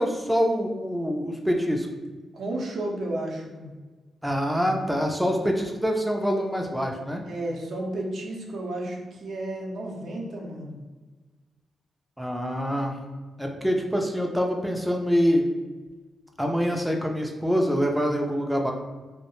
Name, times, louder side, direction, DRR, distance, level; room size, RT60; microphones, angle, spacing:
voice 1, 0.0-1.9 4.2-7.2 12.2-13.0 13.4-15.5 16.4-18.7, equal, 5° right, 1 dB, 0.4 m, -25 dB
voice 2, 2.3-3.7 7.3-10.8, right 1 dB, 70° right, -1 dB, 0.5 m, -32 dB
2.2 x 2.1 x 2.9 m, 1.3 s
cardioid pair, 65°, 0 cm